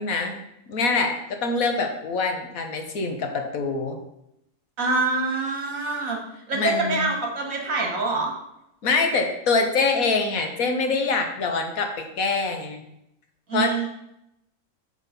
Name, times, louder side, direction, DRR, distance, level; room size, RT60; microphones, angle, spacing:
voice 1, 0.0-4.0 6.5-7.1 8.8-12.8 13.5-13.9, left 4 dB, 80° left, 4 dB, 1.6 m, -25 dB
voice 2, 4.8-8.3 13.5-13.9, right 3 dB, 75° right, 1 dB, 2.3 m, -25 dB
6.7 x 6.3 x 5.2 m, 0.81 s
omnidirectional pair, 1.4 m